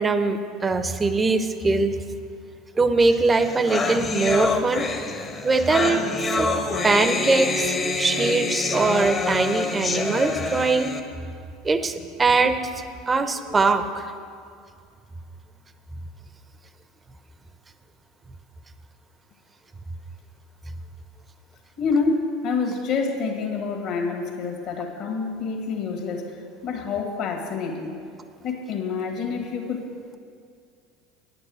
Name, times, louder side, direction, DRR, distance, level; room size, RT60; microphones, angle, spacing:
voice 1, 0.0-2.0 2.8-4.9 5.4-6.0 6.4-6.5 6.8-10.9 11.6-12.5 13.1-14.1, right 3 dB, 25° right, 10 dB, 0.7 m, -22 dB
sound 1, 3.1-3.2 3.4-11.0, left 3 dB, 30° left, 1.1 m, -26 dB
voice 2, 21.8-27.9 28.4-29.8, left 4 dB, 55° left, 1 dB, 1.8 m, -27 dB
9.7 x 8.9 x 6.3 m, 2.3 s
hypercardioid pair, 75°, 0 cm